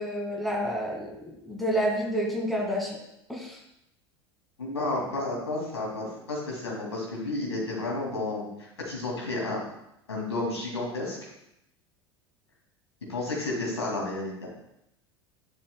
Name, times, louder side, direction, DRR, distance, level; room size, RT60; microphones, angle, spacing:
voice 1, 0.0-2.9 3.3-3.6, equal, ahead, 0 dB, 2.0 m, -29 dB
voice 2, 4.6-9.6 10.1-11.3 13.1-14.5, left 2 dB, 80° left, -2 dB, 2.3 m, -31 dB
11.0 x 6.3 x 2.2 m, 0.82 s
figure-of-eight pair, 75°, 14 cm